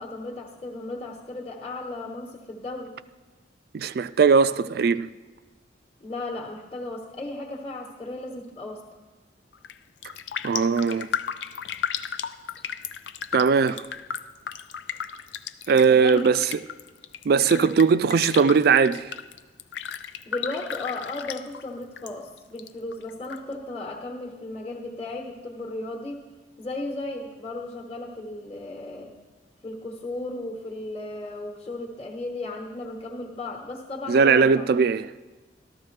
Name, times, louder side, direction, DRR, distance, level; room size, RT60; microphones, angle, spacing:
voice 1, 0.0-2.9 6.0-8.8 15.9-16.3 17.5-17.7 20.2-26.2 26.6-29.1 29.6-34.8, left 2 dB, 30° left, 1.2 m, -35 dB
voice 2, 3.7-5.1 10.4-11.1 13.3-13.9 15.7-16.5 17.3-19.1 34.1-35.1, right 5 dB, 60° right, 0.3 m, -19 dB
Raindrop, 9.5-9.8 10.0-22.1 22.4-23.4 23.8-23.9, left 8 dB, 80° left, 0.5 m, -34 dB
13.5 x 13.0 x 3.3 m
head